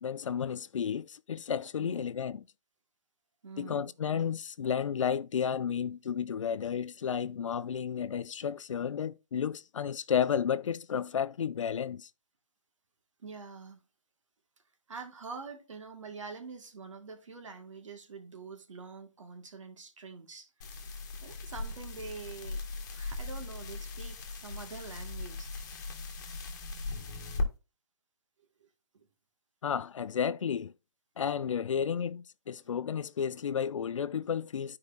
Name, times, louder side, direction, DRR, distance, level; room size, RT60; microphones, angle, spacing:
voice 1, 0.0-2.4 3.6-12.1 29.6-30.7 31.2-34.8, left 8 dB, 75° left, 0.6 m, -32 dB
voice 2, 1.8-2.1 3.4-3.9 13.2-13.8 14.9-20.8 21.2-22.6 22.9-25.5 28.6-28.7 28.9-29.1, right 4 dB, 75° right, 1.9 m, -45 dB
sound 1, 20.6-27.5, left 3 dB, 35° left, 1.3 m, -38 dB
12.0 x 4.9 x 2.6 m
hypercardioid pair, 175°, 16 cm